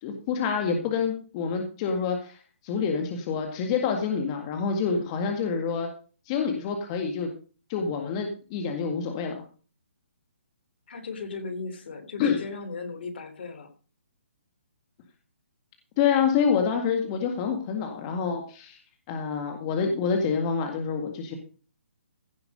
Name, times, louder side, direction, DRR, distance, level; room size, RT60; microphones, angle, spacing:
voice 1, 0.0-2.4 2.6-5.9 6.3-7.3 7.7-9.3 12.2-12.4 16.0-18.8 19.1-21.3, left 6 dB, 25° left, 4 dB, 1.9 m, -27 dB
voice 2, 10.9-13.7, left 4 dB, 55° left, 7 dB, 3.2 m, -36 dB
16.0 x 5.8 x 6.6 m, 0.38 s
hypercardioid pair, 160°, 7 cm